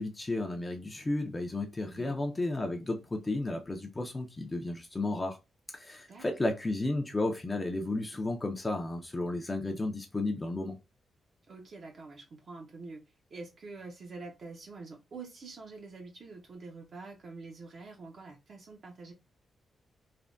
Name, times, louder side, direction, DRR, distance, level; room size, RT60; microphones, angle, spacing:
voice 1, 0.0-5.4 5.7-10.8, left 2 dB, 20° left, 0.4 m, -33 dB
voice 2, 1.8-2.2 6.1-6.5 11.5-19.1, right 3 dB, 45° right, 0.5 m, -46 dB
3.3 x 2.1 x 2.5 m
wide cardioid pair, 140°, 0 cm